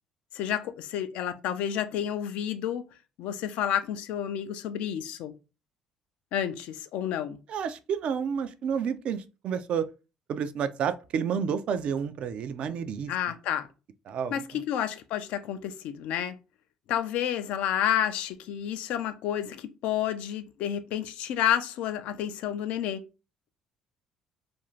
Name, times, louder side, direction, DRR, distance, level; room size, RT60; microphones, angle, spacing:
voice 1, 0.3-2.9 3.2-5.3 6.3-7.4 13.1-13.7 14.3-16.4 16.9-23.0, left 10 dB, 70° left, 0.4 m, -30 dB
voice 2, 7.5-9.9 10.3-13.1 14.1-14.6, right 7 dB, 60° right, 0.3 m, -30 dB
2.5 x 2.3 x 3.0 m
hypercardioid pair, 60°, 2 cm